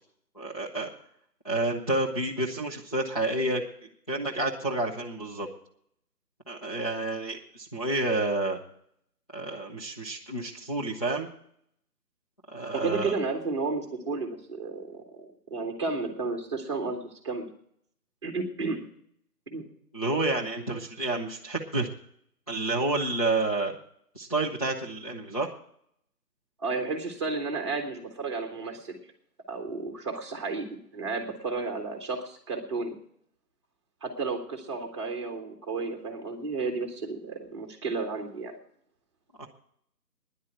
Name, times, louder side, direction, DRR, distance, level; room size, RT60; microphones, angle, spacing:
voice 1, 0.4-0.9 1.4-3.6 4.1-5.5 6.5-8.6 9.3-11.3 12.5-13.2 19.9-21.9 22.5-23.7 24.1-25.5 39.4-39.5, right 2 dB, 25° left, -3 dB, 0.7 m, -29 dB
voice 2, 12.7-17.4 18.2-18.8 19.5-19.6 26.6-29.0 29.5-30.6 30.9-33.0 34.0-38.6, right 4 dB, 15° right, 2 dB, 1.3 m, -32 dB
10.0 x 8.3 x 9.1 m, 0.67 s
figure-of-eight pair, 160°, 48 cm